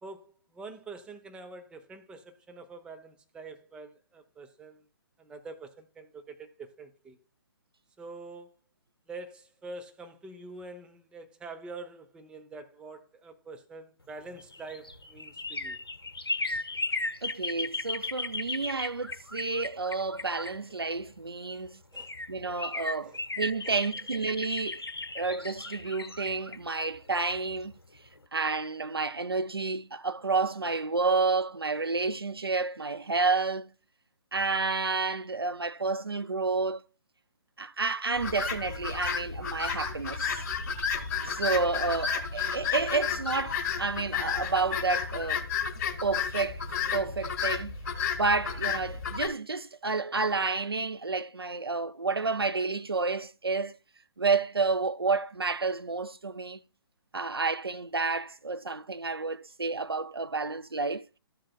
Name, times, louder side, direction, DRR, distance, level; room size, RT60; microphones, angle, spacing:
voice 1, 0.0-4.8 5.2-7.2 8.0-8.5 9.1-15.8 21.9-22.1 23.0-23.2 23.7-23.8, right 3 dB, 5° right, 0.8 m, -45 dB
sound 1, 14.3-21.1 21.6-21.7 21.9-27.7 28.1-28.2, left 2 dB, 80° left, 0.8 m, -36 dB
voice 2, 17.2-21.8 22.3-24.8 25.1-27.7 28.3-33.7 34.3-36.8 37.6-40.4 41.3-45.5 46.0-46.6 46.9-47.7 48.2-53.7 54.2-56.6 57.1-61.0, right 4 dB, 85° right, 0.5 m, -30 dB
sound 2, 38.2-49.3, left 6 dB, 45° left, 2.1 m, -32 dB
13.5 x 7.5 x 2.3 m
figure-of-eight pair, 130°, 12 cm